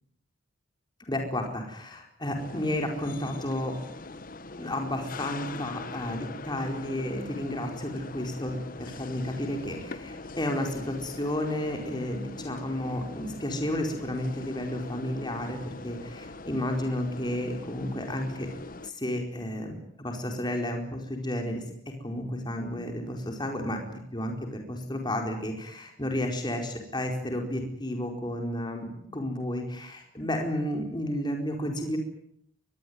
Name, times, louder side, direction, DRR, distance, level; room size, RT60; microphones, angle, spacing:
voice 1, 1.0-3.7 4.6-18.5 18.8-21.6 22.0-32.0, left 1 dB, 25° left, 3 dB, 4.5 m, -32 dB
sound 1, 2.4-18.9, left 3 dB, 45° left, 1.2 m, -42 dB
24.0 x 21.5 x 9.5 m, 0.71 s
head